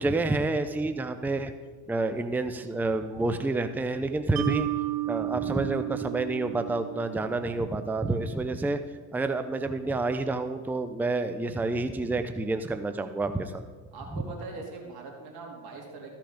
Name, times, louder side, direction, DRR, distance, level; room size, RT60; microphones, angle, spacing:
voice 1, 0.0-1.5 1.9-4.7 5.1-8.8 9.1-13.6 14.1-14.2, right 2 dB, 5° right, 9 dB, 0.6 m, -29 dB
Mallet percussion, 4.4-7.6, right 17 dB, 85° right, 1.0 m, -32 dB
voice 2, 13.9-16.1, right 3 dB, 55° right, 0 dB, 2.9 m, -41 dB
13.0 x 5.8 x 5.1 m, 1.4 s
hypercardioid pair, 70°, 43 cm